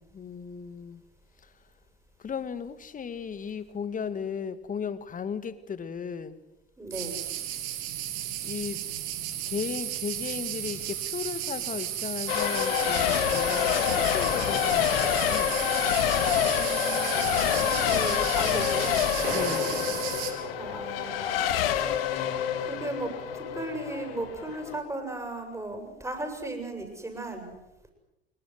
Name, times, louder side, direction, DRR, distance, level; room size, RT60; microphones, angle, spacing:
voice 1, 0.1-1.0 1.4-1.6 2.2-6.4 8.4-8.8 9.5-15.6 19.3-20.0, left 7 dB, 25° left, 13 dB, 2.0 m, -36 dB
voice 2, 6.8-7.2 16.0-19.0 20.6-21.4 22.6-27.5, right 2 dB, 10° right, 5 dB, 7.5 m, -36 dB
sound 1, 6.9-20.3, right 12 dB, 55° right, 4.7 m, -34 dB
Race car auto racing / Accelerating revving vroom / Mechanisms, 12.3-24.8, left 10 dB, 65° left, 2.5 m, -27 dB
sound 2, 19.2-21.2, right 3 dB, 85° right, 7.1 m, -38 dB
26.0 x 23.0 x 7.9 m, 0.90 s
figure-of-eight pair, 70°, 31 cm